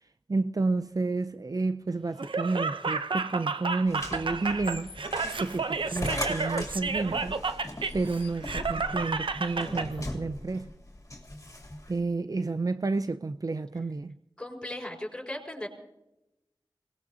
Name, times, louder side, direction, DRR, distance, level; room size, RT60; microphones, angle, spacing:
voice 1, 0.3-4.9 5.4-7.4 7.9-10.7 11.9-14.1, right 3 dB, 45° right, 0.5 m, -30 dB
Laughter, 2.2-9.9, right 4 dB, 90° right, 0.7 m, -31 dB
sound 1, 3.9-12.0, left 1 dB, 40° left, 2.9 m, -39 dB
voice 2, 14.4-15.7, left 1 dB, 10° left, 5.1 m, -37 dB
25.5 x 19.5 x 2.8 m
wide cardioid pair, 45°, 8 cm